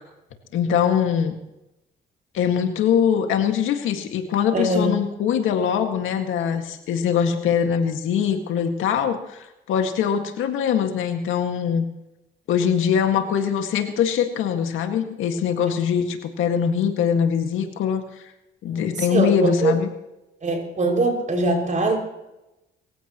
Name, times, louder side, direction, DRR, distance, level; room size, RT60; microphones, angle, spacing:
voice 1, 0.5-1.3 2.3-11.8 12.5-18.0 18.6-19.9, left 8 dB, 85° left, 5 dB, 2.0 m, -22 dB
voice 2, 4.5-4.9 18.9-19.8 20.4-22.0, right 2 dB, 40° right, 2 dB, 6.0 m, -22 dB
23.5 x 15.5 x 3.1 m, 0.92 s
cardioid pair, 90°, 20 cm